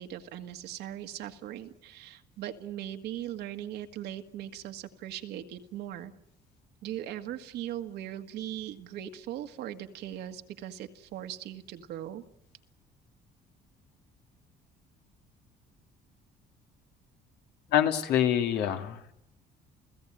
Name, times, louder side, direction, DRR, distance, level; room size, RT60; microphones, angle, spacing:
voice 1, 0.0-6.1 6.8-12.2, right 11 dB, 80° right, 7 dB, 1.8 m, -39 dB
voice 2, 17.7-19.0, left 10 dB, 80° left, 6 dB, 2.3 m, -25 dB
29.5 x 16.5 x 9.1 m, 0.82 s
cardioid pair, 110°, 17 cm